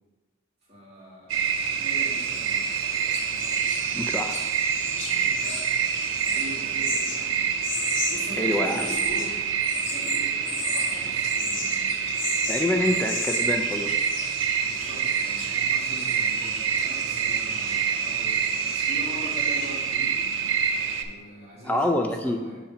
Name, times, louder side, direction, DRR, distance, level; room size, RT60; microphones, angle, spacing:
voice 1, 0.7-2.7 3.3-3.6 5.2-5.7 6.2-7.4 8.1-9.3 9.8-12.4 12.7-13.3 14.6-20.2 21.0-22.6, equal, 35° right, -6 dB, 2.0 m, -42 dB
sound 1, 1.3-21.0, right 7 dB, 85° right, 0.5 m, -26 dB
sound 2, 1.6-19.9, left 5 dB, 65° left, 0.8 m, -37 dB
voice 2, 3.9-4.4 8.4-8.9 12.5-13.9 21.7-22.4, left 1 dB, 10° left, 4 dB, 0.3 m, -26 dB
5.5 x 4.3 x 5.0 m, 1.3 s
head